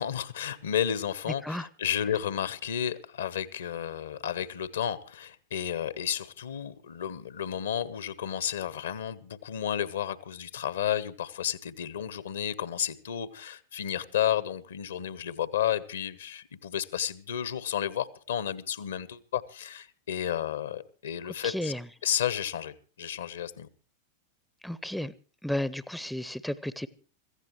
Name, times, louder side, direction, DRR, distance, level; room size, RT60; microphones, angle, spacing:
voice 1, 0.0-21.7 22.0-23.7, left 9 dB, 65° left, 0.9 m, -32 dB
voice 2, 21.4-21.8 24.6-25.1 25.4-26.9, left 1 dB, ahead, 0.6 m, -33 dB
25.0 x 15.0 x 3.1 m
figure-of-eight pair, 90°, 0 cm